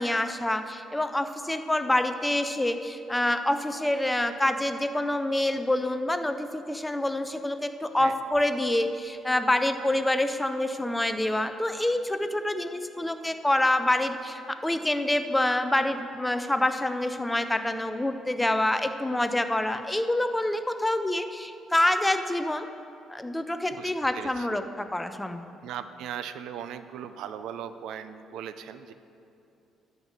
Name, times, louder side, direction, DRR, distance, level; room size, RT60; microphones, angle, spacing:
voice 1, 0.0-22.7 23.1-25.4, left 1 dB, 10° left, 9 dB, 0.5 m, -27 dB
voice 2, 23.7-24.5 25.6-28.9, right 9 dB, 80° right, 11 dB, 0.4 m, -38 dB
12.5 x 5.2 x 6.3 m, 2.7 s
cardioid pair, 110°, 0 cm